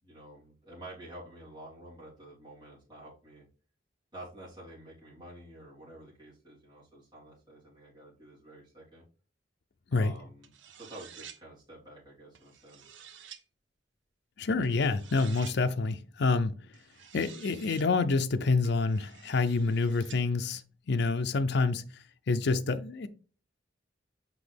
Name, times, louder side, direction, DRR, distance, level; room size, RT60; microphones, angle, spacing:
voice 1, 0.0-3.4 4.1-9.0 9.9-10.5 10.7-13.0, right 1 dB, 25° right, 3.5 m, -49 dB
sound 1, 10.4-11.4 12.3-13.4 14.6-15.6 16.7-17.9 18.6-20.2, right 8 dB, 80° right, 0.8 m, -51 dB
voice 2, 14.4-16.5 17.1-20.6 20.9-21.8 22.3-23.1, left 3 dB, 65° left, 0.5 m, -27 dB
6.1 x 5.3 x 3.4 m
head